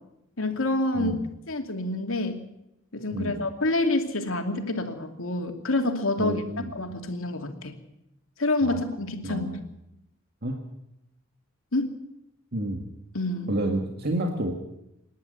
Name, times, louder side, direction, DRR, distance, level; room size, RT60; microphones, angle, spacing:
voice 1, 0.4-1.2 1.5-2.4 2.9-6.4 6.7-7.7 8.4-9.5 11.7-11.9 13.1-13.5, left 2 dB, 85° left, 5 dB, 2.7 m, -27 dB
voice 2, 6.2-6.7 8.6-8.8 9.2-9.6 10.4-10.6 12.5-12.8 13.5-14.5, right 1 dB, 50° right, 2 dB, 2.0 m, -29 dB
26.0 x 11.0 x 9.4 m, 0.85 s
head